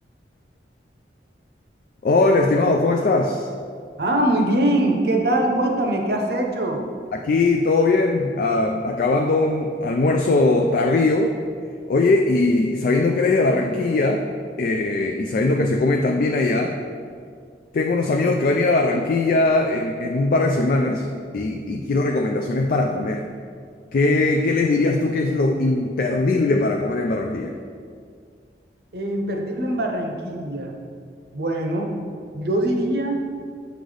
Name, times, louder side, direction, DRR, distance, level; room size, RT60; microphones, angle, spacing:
voice 1, 2.0-3.5 7.1-11.3 11.9-14.2 14.6-16.7 17.7-21.1 21.3-23.2 23.9-27.5, left 2 dB, 50° left, 3 dB, 0.3 m, -20 dB
voice 2, 4.0-6.8 28.9-30.7 31.3-31.9 32.3-33.2, right 1 dB, 60° right, 2 dB, 0.7 m, -22 dB
7.9 x 3.9 x 3.3 m, 2.1 s
head